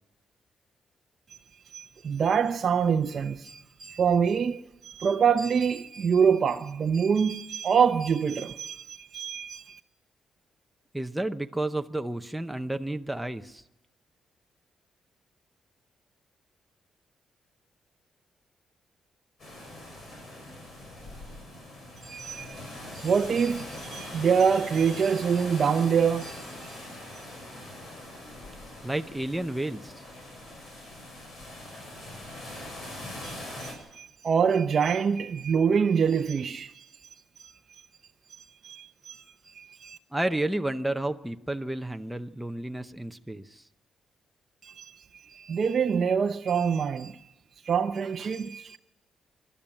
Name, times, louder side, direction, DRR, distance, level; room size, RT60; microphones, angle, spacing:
voice 1, 1.7-9.8 22.0-22.6 22.9-26.8 33.2-36.9 37.4-37.5 38.4-40.0 44.6-45.0 45.3-47.2 47.6-48.8, right 6 dB, 40° right, 0.7 m, -26 dB
voice 2, 10.9-13.6 28.8-29.9 40.1-43.6, right 1 dB, 5° right, 0.7 m, -31 dB
sound 1, 19.4-33.7, left 1 dB, 45° left, 5.7 m, -42 dB
27.5 x 12.0 x 8.8 m
cardioid pair, 155°, 0 cm